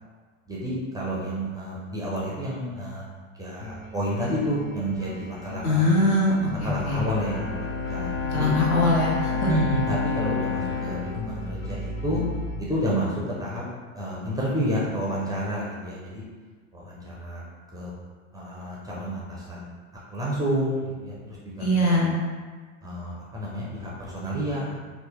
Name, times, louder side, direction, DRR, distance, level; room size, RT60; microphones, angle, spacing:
voice 1, 0.5-3.0 3.4-5.9 6.5-8.5 9.5-12.2 12.6-13.6 13.9-16.2 16.7-17.4 17.7-17.9 18.3-19.7 20.1-21.1 21.6-22.0 22.8-24.8, equal, 10° right, -6 dB, 0.4 m, -30 dB
sound 1, 3.6-12.5, left 1 dB, 30° left, 0.7 m, -37 dB
voice 2, 5.6-7.0 8.2-9.5 21.6-22.2, left 1 dB, 75° left, -4 dB, 0.9 m, -22 dB
Bowed string instrument, 6.8-12.2, left 5 dB, 60° left, 1.5 m, -30 dB
2.8 x 2.1 x 2.8 m, 1.5 s
hypercardioid pair, 85°, 43 cm